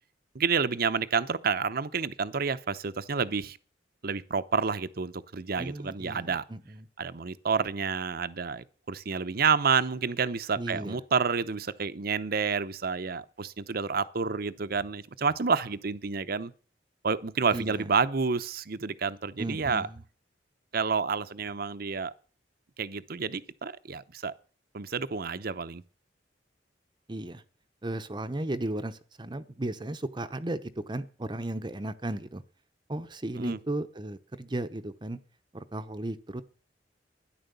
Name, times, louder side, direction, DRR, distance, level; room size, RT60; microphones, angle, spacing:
voice 1, 0.3-3.6 4.0-6.4 7.0-16.5 17.0-19.9 20.7-22.1 22.8-24.3 24.7-25.8 33.4-33.6, right 5 dB, 55° right, 0.8 m, -29 dB
voice 2, 5.6-6.9 10.6-11.0 17.5-17.8 19.4-20.0 27.1-27.4 27.8-32.4 32.9-35.2 35.5-36.4, right 1 dB, 25° right, 0.8 m, -35 dB
13.0 x 10.5 x 6.8 m
head